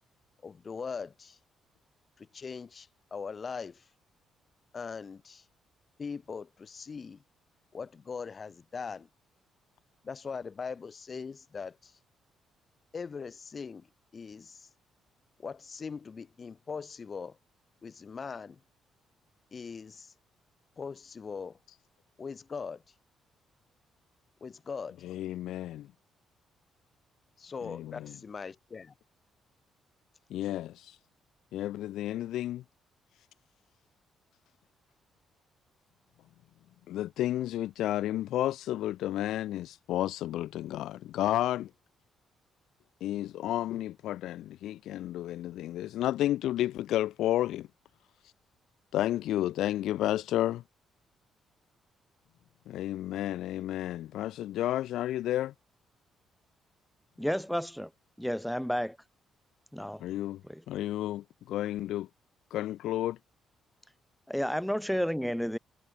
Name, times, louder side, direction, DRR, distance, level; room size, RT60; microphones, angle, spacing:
voice 1, 0.4-1.4 2.2-3.9 4.7-5.4 6.0-7.2 7.7-9.1 10.0-12.0 12.9-13.9 14.1-14.7 15.4-17.4 17.8-18.6 19.5-20.1 20.8-21.6 22.2-22.8 24.4-25.0 27.4-28.9, left 5 dB, 40° left, 2.7 m, -40 dB
voice 2, 25.0-25.9 27.7-28.1 30.3-31.0 31.5-32.6 36.9-41.7 43.0-47.7 48.9-50.6 52.7-55.5 60.0-60.4 60.7-62.1 62.5-63.2, left 13 dB, 85° left, 0.4 m, -31 dB
voice 3, 57.2-57.9 58.2-59.0 59.7-60.0 60.4-60.6 64.3-65.6, equal, ahead, 0.5 m, -31 dB
cardioid pair, 90°, 0 cm